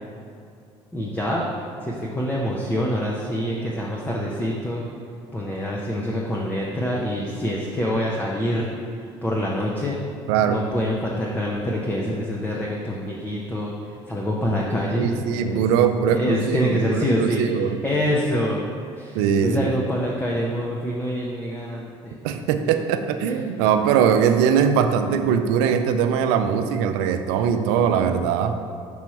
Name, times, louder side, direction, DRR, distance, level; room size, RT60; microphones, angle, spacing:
voice 1, 0.9-1.5 1.8-4.8 5.3-8.7 9.0-10.0 10.4-15.1 15.4-15.6 16.1-22.2 22.6-22.8 23.2-23.3, equal, 15° left, -3 dB, 0.8 m, -26 dB
voice 2, 10.3-10.6 14.9-17.8 19.1-19.7 22.2-28.6, right 7 dB, 80° right, 8 dB, 0.4 m, -21 dB
6.1 x 3.0 x 5.7 m, 2.4 s
hypercardioid pair, 65°, 13 cm